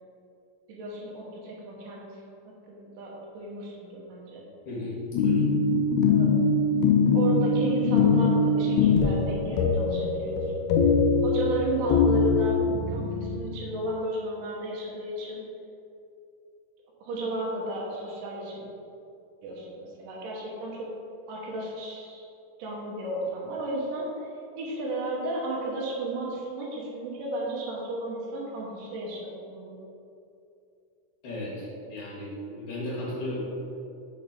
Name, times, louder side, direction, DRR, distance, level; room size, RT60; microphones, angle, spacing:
voice 1, 0.7-2.1 2.7-4.4 6.1-6.3 7.1-10.7 11.2-12.6 12.9-15.4 17.0-18.6 19.4-20.9 21.3-22.3 22.6-24.3 24.6-29.8, right 1 dB, 70° right, -3 dB, 2.7 m, -34 dB
voice 2, 4.7-5.5 31.2-33.4, left 1 dB, 60° left, -7 dB, 2.9 m, -35 dB
sound 1, 5.1-13.4, left 4 dB, 80° left, 1.9 m, -22 dB
6.6 x 4.3 x 5.0 m, 2.6 s
omnidirectional pair, 4.0 m